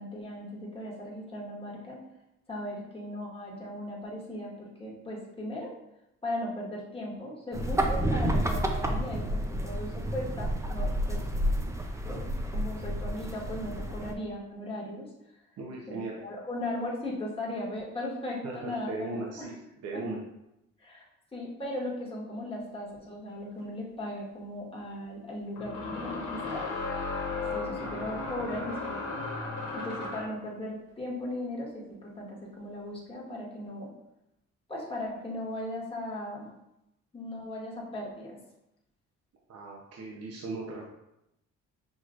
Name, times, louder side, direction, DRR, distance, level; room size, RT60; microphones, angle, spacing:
voice 1, 0.0-2.0 2.5-5.7 6.2-11.2 12.0-15.1 15.9-19.5 20.8-21.0 21.3-26.6 27.5-29.0 29.7-33.9 34.7-36.5 37.1-38.4, left 1 dB, 20° left, -5 dB, 1.4 m, -37 dB
sound 1, 7.5-14.1, equal, 10° right, 0.5 m, -30 dB
voice 2, 15.6-16.2 18.4-20.2 39.5-40.8, right 3 dB, 55° right, -2 dB, 0.8 m, -38 dB
sound 2, 23.6-23.7 25.6-30.4, left 3 dB, 85° left, 1.4 m, -35 dB
6.3 x 3.0 x 2.5 m, 0.86 s
cardioid pair, 90°, 30 cm